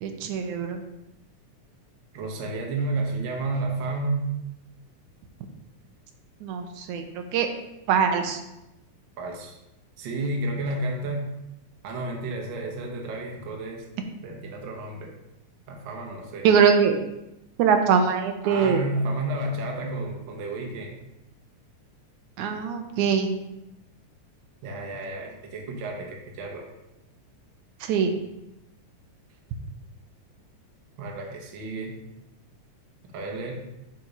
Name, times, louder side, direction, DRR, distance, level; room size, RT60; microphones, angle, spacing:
voice 1, 0.0-0.8 6.4-7.5 7.9-8.4 16.4-17.0 17.6-18.8 22.4-23.3 27.8-28.1, right 6 dB, 85° right, 5 dB, 2.2 m, -22 dB
voice 2, 2.1-4.3 9.2-9.6 10.0-11.3 11.8-13.8 14.2-15.1 15.7-16.5 18.4-21.0 24.6-26.7 31.0-31.9 33.1-33.5, right 2 dB, 55° right, 1 dB, 1.5 m, -31 dB
7.5 x 4.2 x 5.1 m, 0.90 s
omnidirectional pair, 3.4 m